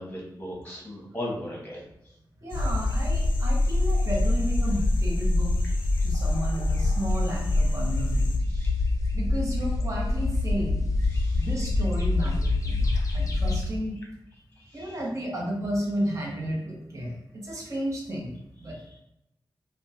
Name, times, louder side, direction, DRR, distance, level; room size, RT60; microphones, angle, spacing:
voice 1, 0.0-1.8 8.5-8.7 11.1-11.5 12.9-13.1 14.7-14.9, left 1 dB, 15° left, -3 dB, 1.1 m, -37 dB
voice 2, 2.4-5.5 6.0-8.3 9.1-10.9 11.3-14.0 14.7-18.3 18.6-18.8, equal, 40° right, -3 dB, 1.0 m, -32 dB
sound 1, 2.5-8.4, left 3 dB, 90° left, 0.4 m, -44 dB
sound 2, 2.5-13.7, left 2 dB, 40° left, 0.6 m, -25 dB
3.3 x 2.3 x 2.7 m, 0.84 s
cardioid pair, 65°, 8 cm